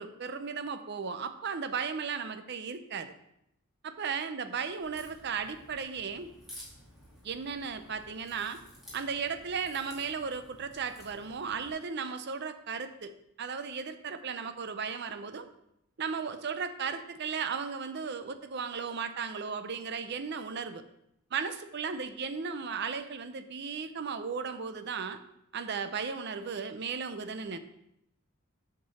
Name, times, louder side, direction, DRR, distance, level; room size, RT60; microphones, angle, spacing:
voice 1, 0.0-3.1 3.8-6.3 7.2-8.6 8.9-13.1 13.4-15.5 16.0-20.8 21.3-25.2 25.5-27.6, right 5 dB, 50° right, 10 dB, 0.5 m, -35 dB
Crack, 4.8-11.7, equal, ahead, 2.2 m, -53 dB
7.7 x 6.0 x 4.1 m, 0.80 s
head